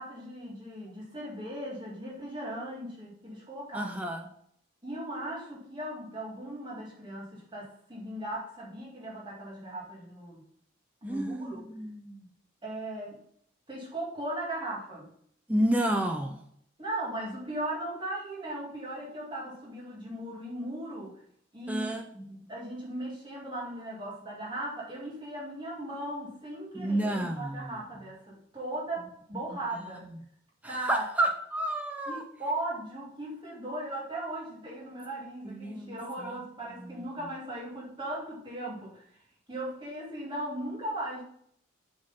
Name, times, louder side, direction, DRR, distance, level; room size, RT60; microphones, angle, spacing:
voice 1, 0.0-3.9 4.8-10.4 11.0-11.7 12.6-13.2 13.7-15.1 16.8-21.2 21.5-30.1 30.6-31.0 32.1-39.1 39.5-41.2, right 1 dB, 25° right, -4 dB, 2.1 m, -38 dB
voice 2, 3.7-4.2 11.0-12.3 15.5-16.4 21.7-22.1 26.7-27.7 30.6-32.2 35.4-36.3 36.8-36.9, right 1 dB, 5° right, 3 dB, 0.5 m, -30 dB
7.8 x 4.1 x 5.5 m, 0.67 s
head